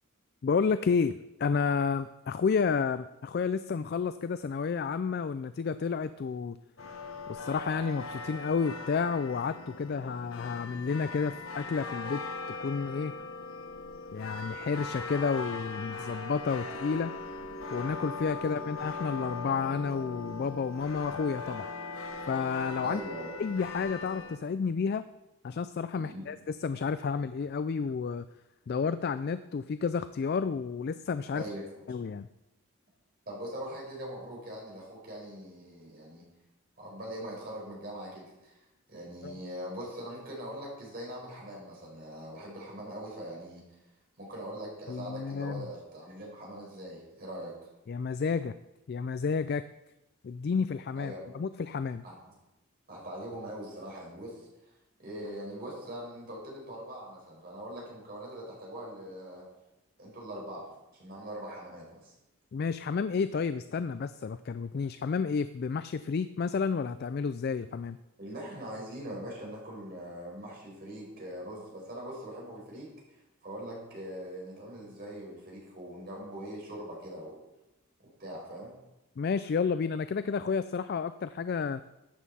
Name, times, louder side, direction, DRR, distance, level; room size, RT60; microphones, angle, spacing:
voice 1, 0.4-6.6 7.3-12.2 12.6-13.1 14.1-17.1 17.7-21.7 22.3-23.0 23.4-25.1 25.4-28.2 28.7-31.4 31.9-32.3 39.2-39.4 44.9-45.7 47.9-48.5 48.9-49.7 50.2-52.0 62.5-68.0 79.2-81.8, left 5 dB, 50° left, 13 dB, 0.3 m, -31 dB
sound 1, 6.8-24.4, left 3 dB, 80° left, 1.1 m, -40 dB
voice 2, 18.4-18.7 22.8-23.3 25.9-26.3 31.3-31.7 33.2-36.3 36.8-38.6 38.9-43.7 44.2-47.6 50.9-51.3 52.0-52.3 52.9-54.7 55.0-59.5 60.0-62.1 68.2-77.4 78.0-78.8, equal, 45° right, -3 dB, 5.0 m, -42 dB
13.5 x 9.1 x 4.2 m, 0.95 s
head